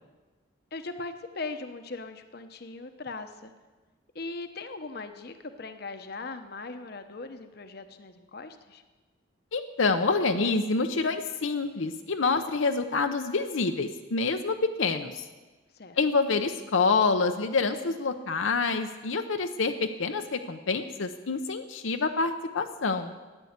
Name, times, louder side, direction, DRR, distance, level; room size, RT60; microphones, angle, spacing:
voice 1, 0.7-3.5 4.1-8.8 15.7-16.0, left 3 dB, 50° left, 8 dB, 0.9 m, -39 dB
voice 2, 9.5-15.3 16.0-23.1, left 4 dB, 75° left, 6 dB, 0.8 m, -27 dB
13.5 x 9.8 x 8.2 m, 1.3 s
head